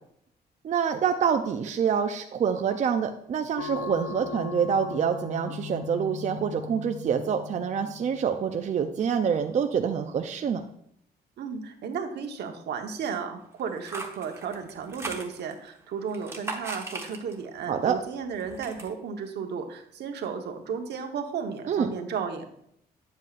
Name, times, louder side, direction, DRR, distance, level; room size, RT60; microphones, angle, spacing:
voice 1, 0.6-10.6 17.7-18.0 21.7-21.9, right 7 dB, 45° right, 6 dB, 0.5 m, -26 dB
sound 1, 3.6-8.7, left 8 dB, 85° left, 0.7 m, -39 dB
voice 2, 11.4-22.5, right 6 dB, 80° right, 5 dB, 1.1 m, -34 dB
sound 2, 13.6-15.7 16.1-17.6 17.9-18.9, right 2 dB, 15° right, 1.0 m, -38 dB
9.2 x 7.6 x 2.4 m, 0.71 s
cardioid pair, 135°, 17 cm